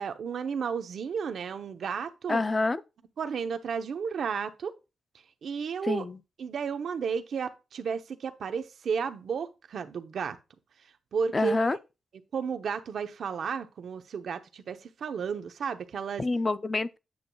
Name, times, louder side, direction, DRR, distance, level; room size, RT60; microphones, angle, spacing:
voice 1, 0.0-2.4 3.2-4.7 5.4-6.0 6.4-10.4 11.1-11.7 12.3-16.2, right 6 dB, 65° right, 0.9 m, -33 dB
voice 2, 2.3-2.8 5.8-6.2 11.3-11.8 16.2-17.0, left 3 dB, 25° left, 0.5 m, -27 dB
8.7 x 7.6 x 2.3 m
cardioid pair, 100°, 0 cm